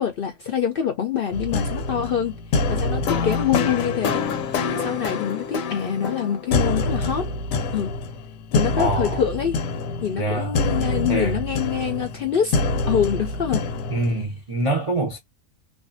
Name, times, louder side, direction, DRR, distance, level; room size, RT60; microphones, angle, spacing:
voice 1, 0.0-2.4 2.7-4.2 4.7-7.3 7.7-7.9 8.5-9.6 10.0-12.6 12.9-13.6, left 8 dB, 65° left, 0.5 m, -25 dB
sound 1, 1.3-14.2, left 3 dB, 85° left, 1.0 m, -26 dB
voice 2, 8.8-9.2 10.1-10.6 11.1-11.4 13.9-15.2, right 2 dB, 50° right, 0.4 m, -25 dB
2.5 x 2.2 x 2.4 m
omnidirectional pair, 1.4 m